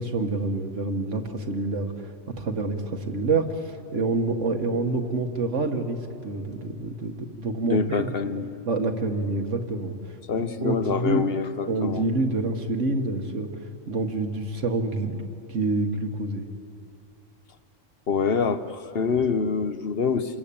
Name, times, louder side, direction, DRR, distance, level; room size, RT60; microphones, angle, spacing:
voice 1, 0.0-8.1 8.7-11.3 11.7-16.5, right 3 dB, 85° right, 5 dB, 2.0 m, -27 dB
voice 2, 7.7-8.5 10.3-12.1 18.1-20.4, left 5 dB, 55° left, 11 dB, 1.1 m, -26 dB
28.0 x 21.5 x 8.6 m, 2.7 s
omnidirectional pair, 1.2 m